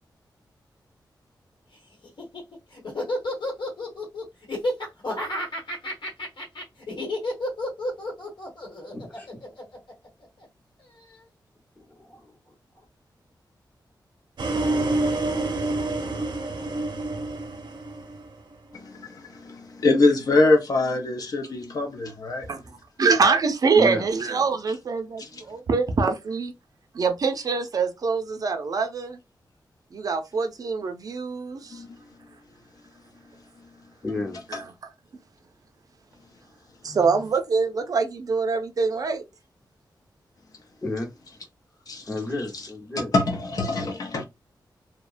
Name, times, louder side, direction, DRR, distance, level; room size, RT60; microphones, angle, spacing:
Laughter, 2.0-10.5, left 1 dB, 85° left, 1.2 m, -31 dB
voice 1, 8.9-9.3 11.9-12.3 23.7-24.1 34.0-34.4 36.8-37.2 40.8-41.1 42.1-43.1, left 2 dB, 25° left, 0.8 m, -32 dB
sound 1, 14.4-18.5, right 2 dB, 85° right, 0.7 m, -27 dB
voice 2, 18.7-22.5 25.2-25.4 31.7-31.9 34.5-34.6 41.9-42.0 43.1-44.2, left 2 dB, 55° left, 0.6 m, -24 dB
voice 3, 23.0-26.5 26.9-29.2 29.9-31.8 34.5-34.6 36.8-39.2, right 4 dB, 50° right, 0.4 m, -24 dB
2.7 x 2.1 x 2.4 m
wide cardioid pair, 165°, 8 cm